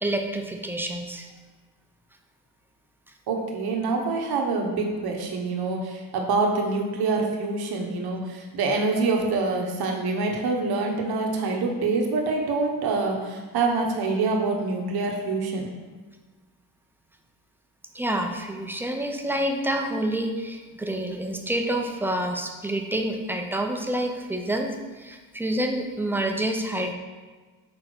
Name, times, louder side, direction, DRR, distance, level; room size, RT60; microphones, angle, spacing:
voice 1, 0.0-1.3 17.9-24.7 25.0-26.9, right 1 dB, 5° right, 3 dB, 0.7 m, -28 dB
voice 2, 3.3-15.7, right 3 dB, 65° right, 1 dB, 1.3 m, -26 dB
6.4 x 3.8 x 4.5 m, 1.3 s
cardioid pair, 85°, 41 cm